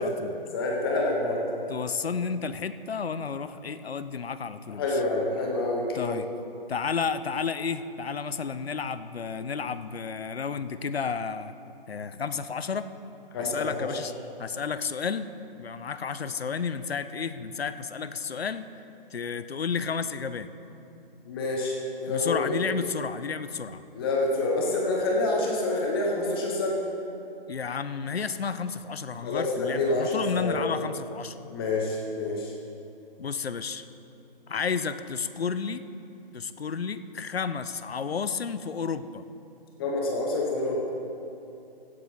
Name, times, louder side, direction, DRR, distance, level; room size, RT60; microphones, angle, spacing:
voice 1, 0.0-0.3 1.7-5.0 5.9-6.3 6.7-11.5 11.9-12.9 13.4-14.1 14.4-15.3 15.6-18.7 19.1-20.5 22.1-23.8 27.5-31.5 33.2-33.8 34.5-35.8 36.3-39.2, left 6 dB, 90° left, 12 dB, 0.7 m, -31 dB
voice 2, 0.5-1.4 4.8-6.2 13.3-13.9 21.3-22.6 23.9-26.8 29.2-30.6 31.5-32.5 39.8-40.9, left 2 dB, 25° left, -1 dB, 1.1 m, -27 dB
16.0 x 7.9 x 4.0 m, 2.7 s
hypercardioid pair, 150°, 30 cm